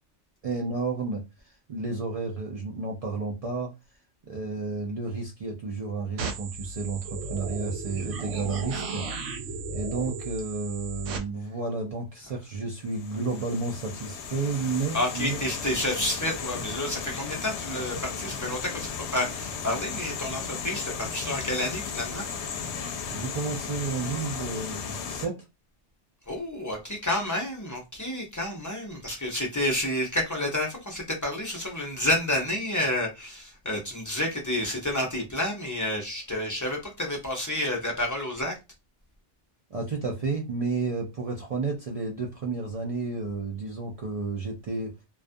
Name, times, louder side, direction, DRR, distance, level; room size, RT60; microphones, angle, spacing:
voice 1, 0.4-1.2 1.7-3.7 4.2-9.4 9.7-15.4 23.1-25.4 39.7-44.9, right 4 dB, 65° right, 0.3 m, -31 dB
sound 1, 6.2-11.2, right 3 dB, 90° right, 0.9 m, -35 dB
sound 2, 12.8-25.3, left 6 dB, 75° left, 0.8 m, -35 dB
voice 2, 14.9-22.2 26.3-38.5, left 1 dB, 25° left, 0.4 m, -30 dB
2.3 x 2.3 x 2.5 m
omnidirectional pair, 1.2 m